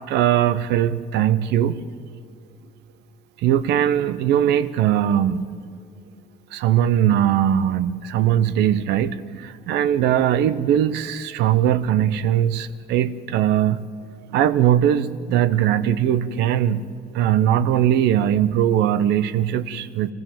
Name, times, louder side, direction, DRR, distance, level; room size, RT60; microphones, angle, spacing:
voice 1, 0.1-1.8 3.4-5.4 6.5-13.8 14.3-16.8 17.1-20.1, right 10 dB, 85° right, 16 dB, 0.9 m, -20 dB
25.0 x 15.0 x 7.5 m, 2.2 s
cardioid pair, 110°, 17 cm